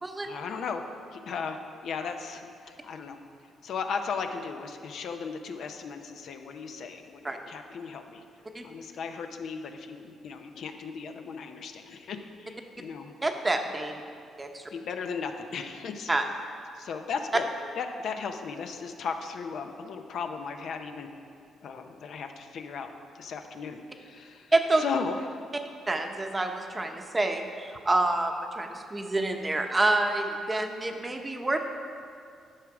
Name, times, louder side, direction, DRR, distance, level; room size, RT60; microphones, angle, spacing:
voice 1, 0.2-0.8 1.1-3.2 3.6-8.2 8.6-13.1 14.7-16.1 16.7-17.5 17.8-21.1 21.6-22.9 23.1-24.5 24.8-25.5, left 5 dB, 65° left, 6 dB, 0.6 m, -36 dB
voice 2, 13.2-14.0 14.4-14.6 16.1-16.2 24.5-24.8 25.9-31.6, right 2 dB, 20° right, 5 dB, 0.8 m, -27 dB
10.5 x 6.2 x 4.8 m, 2.3 s
cardioid pair, 90°, 0 cm